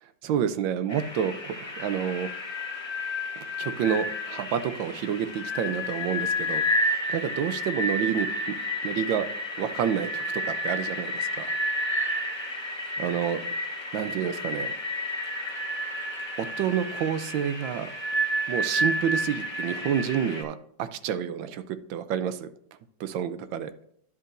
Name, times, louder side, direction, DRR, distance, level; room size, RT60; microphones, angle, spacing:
voice 1, 0.2-2.3 3.4-8.5 8.8-9.3 9.6-11.5 13.0-13.4 13.9-14.7 16.4-17.9 18.5-22.5 23.0-23.7, right 8 dB, 80° right, 12 dB, 1.3 m, -29 dB
sound 1, 0.9-20.4, left 1 dB, 35° left, 0.4 m, -31 dB
11.0 x 7.5 x 2.5 m, 0.67 s
omnidirectional pair, 2.1 m